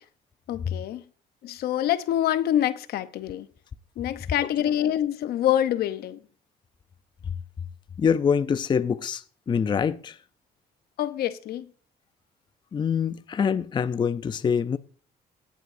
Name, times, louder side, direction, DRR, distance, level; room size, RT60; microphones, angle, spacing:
voice 1, 0.5-1.0 1.4-3.5 4.0-6.2 11.0-11.7, left 11 dB, 70° left, 0.8 m, -26 dB
voice 2, 8.0-10.2 12.7-14.8, left 7 dB, 25° left, 0.5 m, -25 dB
17.5 x 7.7 x 2.6 m
cardioid pair, 110°, 17 cm